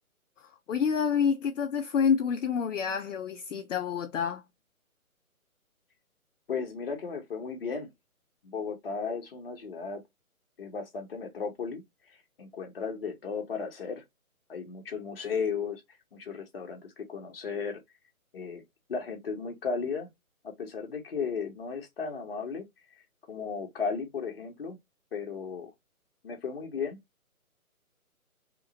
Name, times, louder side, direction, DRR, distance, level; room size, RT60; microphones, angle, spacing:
voice 1, 0.7-4.4, left 7 dB, 60° left, 0.5 m, -28 dB
voice 2, 6.5-7.9 8.4-10.0 10.6-11.8 12.4-14.0 14.5-15.8 16.1-17.8 18.3-18.6 18.9-20.1 20.4-22.6 23.3-24.8 25.1-25.7 26.2-27.0, left 5 dB, 40° left, 0.9 m, -35 dB
2.9 x 2.3 x 3.9 m
hypercardioid pair, 155°, 44 cm